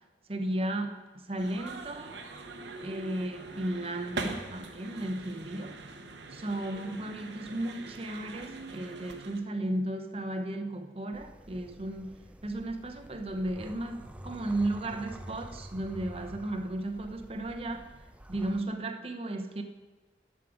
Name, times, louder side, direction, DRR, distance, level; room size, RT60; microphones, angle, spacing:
voice 1, 0.3-2.1 2.8-5.8 6.3-17.9 18.3-19.6, right 1 dB, 35° right, 6 dB, 0.8 m, -34 dB
sound 1, 1.4-9.4, right 3 dB, 85° right, 1.0 m, -42 dB
sound 2, 11.1-18.6, right 1 dB, 5° right, 0.3 m, -48 dB
11.0 x 7.4 x 4.9 m, 1.2 s
head